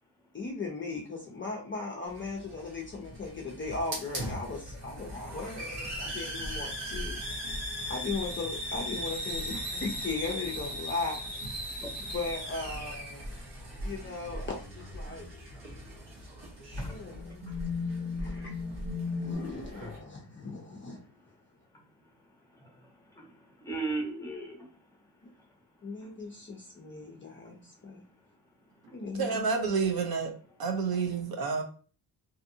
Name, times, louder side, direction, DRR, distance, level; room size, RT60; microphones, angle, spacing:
voice 1, 0.3-7.2 7.9-11.2 11.7-11.8 12.1-13.2 13.8-15.3 16.9-17.5 18.2-18.5 19.1-21.1 25.8-28.0 28.9-29.4, left 3 dB, 30° left, 0.4 m, -37 dB
Hiss, 2.1-20.0, equal, 70° right, 1.1 m, -39 dB
sound 1, 14.8-15.1 15.8-15.9 16.7-19.3, left 5 dB, 20° right, 1.0 m, -36 dB
voice 2, 16.8-17.6 18.0-18.5 19.0-19.3 21.2-21.3 21.7-21.8 22.2-24.9 26.0-26.1 28.8-29.0, right 3 dB, 5° left, 0.8 m, -40 dB
voice 3, 29.2-30.3 30.6-31.6, right 5 dB, 55° right, 0.6 m, -29 dB
2.6 x 2.5 x 2.6 m
wide cardioid pair, 160°, 44 cm